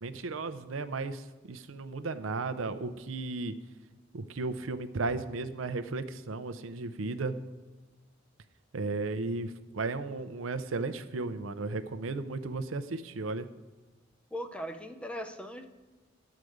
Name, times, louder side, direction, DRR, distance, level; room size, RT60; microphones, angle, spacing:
voice 1, 0.0-3.5 4.1-7.3 8.7-13.5, right 3 dB, 90° right, 11 dB, 0.6 m, -35 dB
voice 2, 14.3-15.7, equal, 5° left, 7 dB, 0.6 m, -39 dB
12.0 x 4.9 x 7.9 m, 1.2 s
head